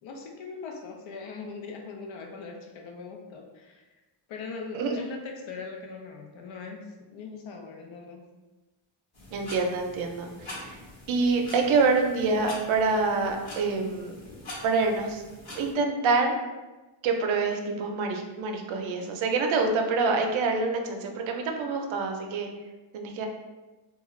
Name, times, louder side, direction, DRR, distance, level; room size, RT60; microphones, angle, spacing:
voice 1, 0.0-3.9 4.3-8.2, left 4 dB, 80° left, 2 dB, 0.6 m, -40 dB
sound 1, 9.1-15.7, left 1 dB, 55° left, 1.0 m, -44 dB
voice 2, 9.3-10.8 11.1-14.1 14.6-15.2 15.5-16.4 17.0-22.5 22.9-23.3, right 4 dB, 80° right, 3 dB, 0.5 m, -26 dB
2.3 x 2.3 x 3.0 m, 1.2 s
wide cardioid pair, 175°, 47 cm